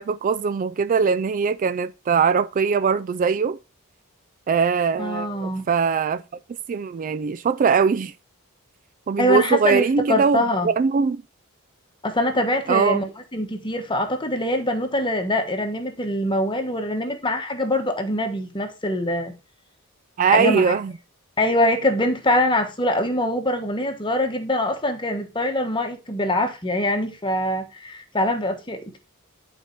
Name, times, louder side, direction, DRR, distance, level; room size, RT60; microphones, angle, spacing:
voice 1, 0.0-3.6 4.5-6.2 6.7-8.1 9.1-11.2 12.7-13.0 20.2-20.9, right 6 dB, 35° right, 0.3 m, -21 dB
voice 2, 5.0-5.7 9.2-10.7 12.0-13.1 13.3-19.3 20.2-20.7 21.4-29.0, left 1 dB, 20° left, 1.3 m, -23 dB
11.0 x 4.5 x 4.5 m
head